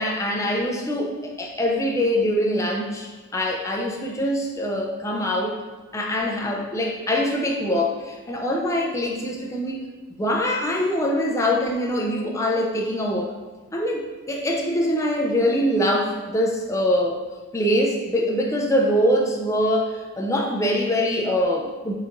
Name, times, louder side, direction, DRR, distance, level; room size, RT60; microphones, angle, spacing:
voice 1, 0.0-5.6 5.9-9.8 10.2-13.3 13.7-17.2 17.5-21.9, equal, 15° left, 0 dB, 0.4 m, -23 dB
4.4 x 3.9 x 2.5 m, 1.3 s
head